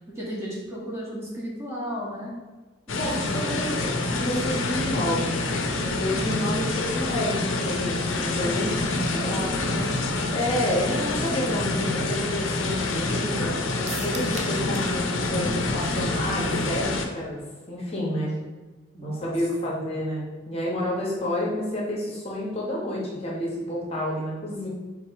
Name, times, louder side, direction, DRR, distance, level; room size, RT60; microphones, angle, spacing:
voice 1, 0.2-2.3 2.9-4.6 8.8-9.9 18.9-19.3 19.6-19.8, right 1 dB, 15° right, -5 dB, 0.9 m, -35 dB
sound 1, 2.9-17.1, left 2 dB, 80° left, 0.5 m, -27 dB
voice 2, 2.9-3.7 4.3-5.4 5.8-8.8 9.1-9.5 10.3-17.4 17.7-18.3 19.0-24.7, left 1 dB, 30° left, -4 dB, 0.8 m, -29 dB
sound 2, 13.9-15.0 15.2-15.3 15.7-15.8, right 5 dB, 35° right, 0.4 m, -38 dB
3.7 x 2.9 x 4.4 m, 1.3 s
head